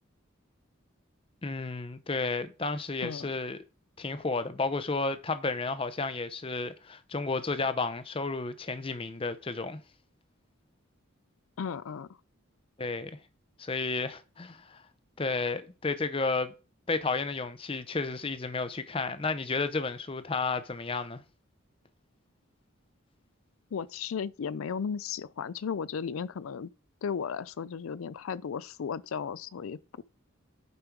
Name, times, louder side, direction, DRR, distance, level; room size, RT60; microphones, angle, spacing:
voice 1, 1.4-3.6 4.0-9.8 12.8-13.2 13.6-14.8 15.2-16.5 16.9-21.2, left 3 dB, 25° left, 0.6 m, -32 dB
voice 2, 11.6-12.1 23.7-26.7 27.0-30.0, left 6 dB, 75° left, 0.4 m, -35 dB
6.9 x 5.2 x 4.6 m
head